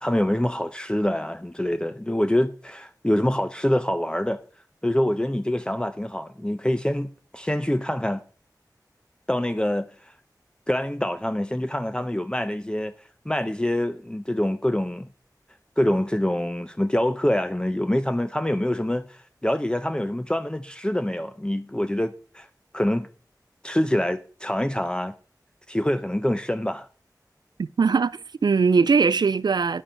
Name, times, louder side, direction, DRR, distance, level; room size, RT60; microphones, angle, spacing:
voice 1, 0.0-4.4 4.8-8.2 9.3-9.9 10.7-12.9 13.3-15.1 15.8-22.5 22.7-23.1 23.6-25.1 25.7-26.9, left 1 dB, 15° left, 0.6 m, -25 dB
voice 2, 27.6-29.8, right 5 dB, 80° right, 0.3 m, -21 dB
10.0 x 5.3 x 5.5 m
wide cardioid pair, 60°, 7 cm